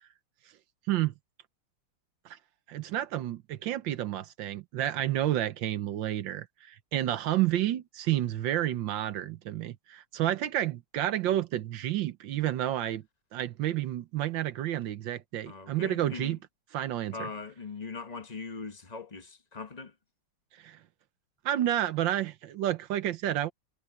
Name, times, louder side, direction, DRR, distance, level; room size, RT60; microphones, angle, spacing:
voice 1, 2.7-13.0 13.3-16.4 16.7-17.3 20.6-20.8 21.4-23.5, right 12 dB, 70° right, 1.4 m, -30 dB
voice 2, 15.5-16.4 17.1-19.9, left 4 dB, 25° left, 1.0 m, -40 dB
omnidirectional pair, 2.3 m